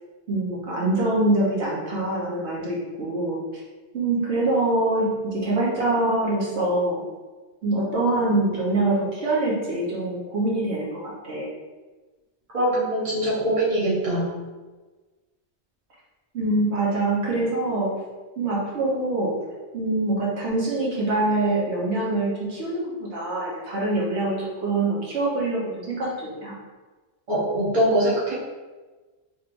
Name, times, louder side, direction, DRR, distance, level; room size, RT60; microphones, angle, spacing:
voice 1, 0.3-3.6 3.9-7.0 7.6-11.5 16.3-17.9 18.4-19.3 19.7-26.5, right 2 dB, 75° right, -5 dB, 1.2 m, -24 dB
voice 2, 12.5-14.3 27.3-28.3, right 1 dB, 30° right, -7 dB, 1.1 m, -22 dB
4.3 x 3.3 x 2.5 m, 1.3 s
omnidirectional pair, 1.1 m